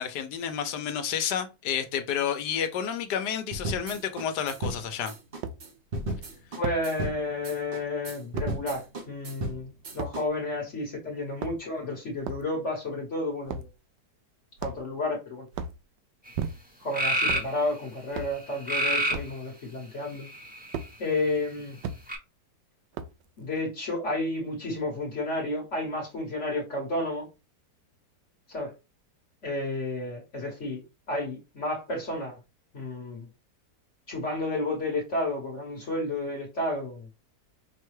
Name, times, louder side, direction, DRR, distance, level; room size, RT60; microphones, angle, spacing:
voice 1, 0.0-5.1, left 8 dB, 80° left, 1.2 m, -30 dB
sound 1, 3.5-10.2, right 1 dB, 45° right, 0.7 m, -35 dB
sound 2, 5.4-5.6 6.6-6.8 8.4-8.5 10.0-10.2 11.2-11.8 12.2-12.5 13.5-13.7 14.6-15.0 15.5-15.8 16.3-16.8 17.2-17.5 18.1-18.4 19.1-19.4 20.7-20.9 21.8-22.0 22.9-23.3, right 5 dB, 80° right, 1.2 m, -35 dB
voice 2, 6.5-13.7 14.6-15.5 16.8-20.3 21.0-21.7 23.4-27.3 28.5-28.7 29.4-30.8 31.1-32.4 32.7-33.3 34.1-37.1, left 2 dB, 50° left, 1.3 m, -31 dB
sound 3, 16.3-16.4 16.9-17.5 18.6-19.3 20.1-20.8 22.1-22.2, right 1 dB, 5° right, 0.8 m, -26 dB
5.6 x 2.2 x 3.1 m
omnidirectional pair, 1.8 m